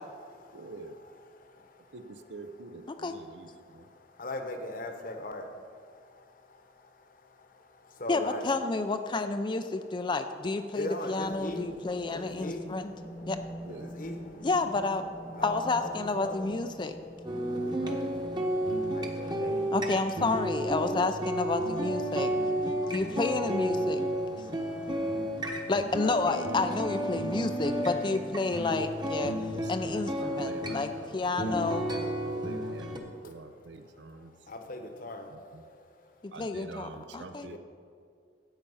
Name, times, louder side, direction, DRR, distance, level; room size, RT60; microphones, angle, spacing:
voice 1, 0.0-2.0 2.9-8.5 10.0-10.1 10.7-13.3 13.7-14.5 15.3-16.5 16.9-19.8 22.1-23.2 23.8-25.7 26.0-26.4 27.1-27.8 28.5-28.6 29.2-30.0 30.3-30.5 31.1-31.7 33.1-33.3 33.8-36.3 37.4-37.6, left 1 dB, 50° left, 6 dB, 1.1 m, -43 dB
voice 2, 0.5-1.0 1.9-3.9 13.7-14.0 25.9-26.2 29.3-31.3 31.9-34.5 35.3-35.6 36.3-37.6, right 3 dB, 75° right, 9 dB, 0.7 m, -47 dB
voice 3, 8.1-12.9 13.3-13.4 14.4-15.1 15.4-17.0 19.7-22.3 22.9-24.0 25.7-29.3 29.7-31.8 36.2-36.9 37.1-37.5, left 3 dB, 25° left, 8 dB, 0.4 m, -30 dB
sound 1, 11.2-28.5, right 1 dB, 10° left, 0.9 m, -47 dB
sound 2, 17.2-33.0, right 1 dB, 25° right, 1.1 m, -32 dB
13.0 x 8.8 x 5.6 m, 2.3 s
head